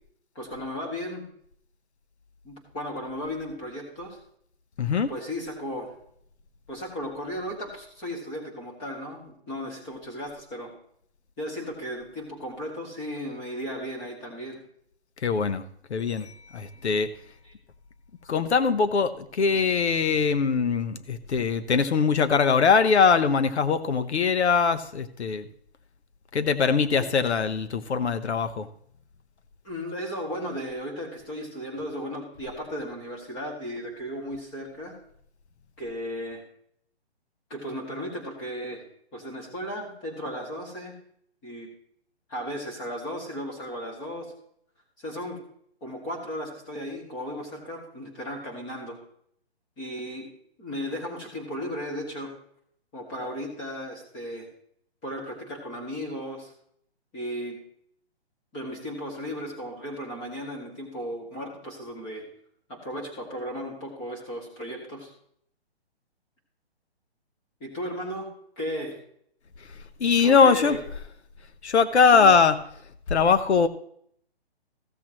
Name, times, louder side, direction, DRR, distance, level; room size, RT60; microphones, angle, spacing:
voice 1, 0.4-1.2 2.4-4.2 5.1-5.9 6.7-10.7 11.4-14.6 17.4-17.5 27.0-27.1 29.6-35.0 35.8-36.4 37.5-38.8 39.1-40.9 41.4-41.7 42.3-44.3 45.0-45.4 45.8-49.0 49.8-50.3 50.6-52.3 52.9-54.5 55.0-56.5 57.1-57.6 58.5-62.2 62.7-65.1 67.6-68.3 68.6-68.9 70.2-70.8 72.1-72.3, equal, 15° left, -1 dB, 2.1 m, -35 dB
voice 2, 4.8-5.1 15.2-15.6 15.9-17.1 18.3-25.5 26.3-28.7 70.0-71.0 71.6-72.6 73.1-73.7, left 5 dB, 85° left, 11 dB, 0.9 m, -22 dB
15.5 x 7.5 x 3.0 m, 0.66 s
hypercardioid pair, 170°, 33 cm